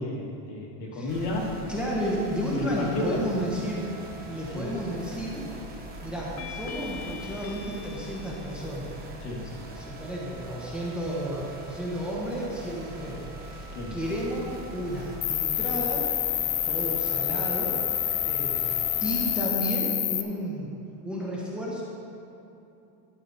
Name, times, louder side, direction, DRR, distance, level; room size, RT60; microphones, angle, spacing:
voice 1, 0.0-1.6 2.5-3.3 4.5-4.7 9.2-9.5 13.7-14.0, left 1 dB, 60° left, -1 dB, 2.2 m, -32 dB
sound 1, 1.1-19.4, right 2 dB, 20° right, 1.0 m, -42 dB
voice 2, 1.7-3.9 4.3-5.5 6.0-8.9 9.2-16.1 16.7-17.8 18.2-20.7 21.0-21.8, equal, ahead, -5 dB, 1.2 m, -32 dB
sound 2, 4.7-5.1 6.4-9.1, left 6 dB, 85° left, 1.2 m, -43 dB
Cricket, 15.2-20.2, left 13 dB, 30° left, 0.4 m, -27 dB
12.0 x 8.7 x 4.2 m, 2.9 s
supercardioid pair, 155°, 50 cm